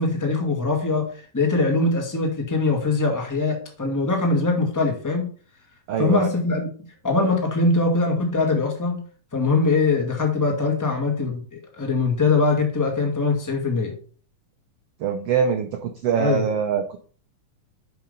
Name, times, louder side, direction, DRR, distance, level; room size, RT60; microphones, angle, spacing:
voice 1, 0.0-5.3 6.0-6.7 7.0-9.0 9.3-14.0 16.2-16.4, left 3 dB, 20° left, 1 dB, 0.5 m, -22 dB
voice 2, 5.9-6.3 15.0-17.0, right 7 dB, 80° right, 5 dB, 1.4 m, -24 dB
7.0 x 5.7 x 5.3 m, 0.41 s
omnidirectional pair, 3.8 m